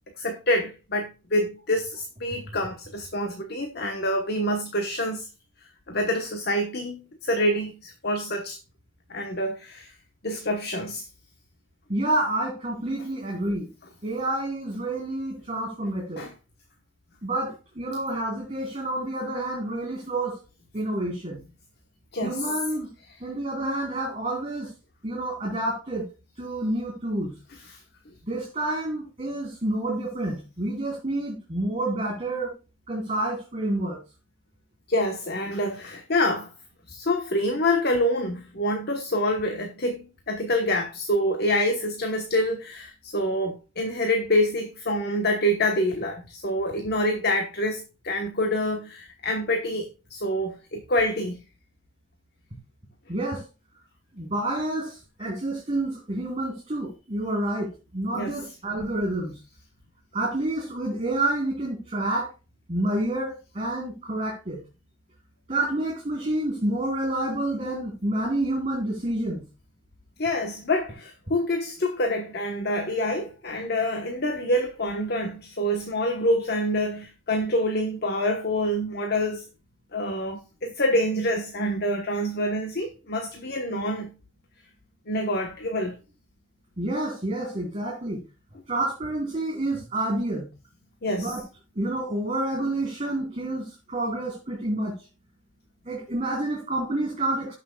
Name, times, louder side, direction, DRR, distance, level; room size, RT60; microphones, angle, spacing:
voice 1, 0.2-5.3 5.9-8.6 9.1-9.9 10.2-11.0 16.2-16.3 22.1-22.5 23.1-23.2 27.5-27.8 34.9-36.5 36.9-51.4 58.1-58.4 70.2-79.4 79.9-84.1 85.1-86.0 91.0-91.3, left 1 dB, 50° left, 1.2 m, -26 dB
voice 2, 11.9-13.7 14.0-16.2 17.2-17.5 17.8-20.4 20.7-21.4 22.2-22.9 23.2-24.7 25.0-26.1 26.4-27.3 28.3-32.6 32.9-34.0 53.1-53.4 54.1-59.3 60.1-62.3 62.7-64.6 65.5-69.4 86.8-88.2 88.7-90.5 91.2-91.4 91.8-94.9 95.9-97.5, right 1 dB, 30° right, 4.7 m, -28 dB
17.5 x 6.2 x 2.3 m
head